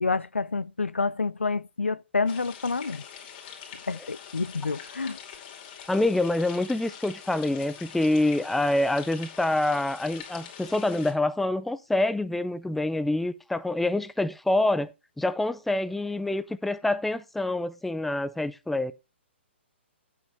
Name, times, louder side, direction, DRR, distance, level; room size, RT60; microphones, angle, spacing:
voice 1, 0.0-3.0 3.9-5.2, left 4 dB, 90° left, 0.5 m, -28 dB
sound 1, 2.3-11.1, left 8 dB, 40° left, 2.6 m, -44 dB
voice 2, 5.9-14.9 15.2-18.9, left 2 dB, 5° left, 0.4 m, -26 dB
8.3 x 6.2 x 4.6 m
figure-of-eight pair, 125°, 6 cm